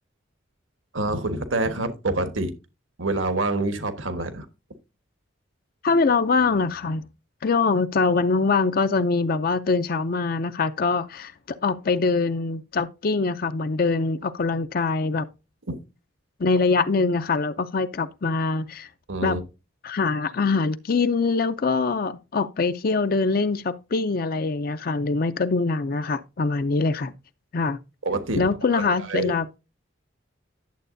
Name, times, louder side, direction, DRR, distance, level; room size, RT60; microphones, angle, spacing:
voice 1, 0.9-2.5 3.0-4.4 15.7-15.8 19.1-19.4 28.0-28.5 28.7-29.4, right 2 dB, 80° right, 1.4 m, -26 dB
voice 2, 5.8-7.0 7.4-15.3 16.4-18.9 19.2-19.4 19.8-27.1 27.5-27.8 28.4-29.6, left 4 dB, 50° left, 0.5 m, -23 dB
11.0 x 7.6 x 2.6 m
head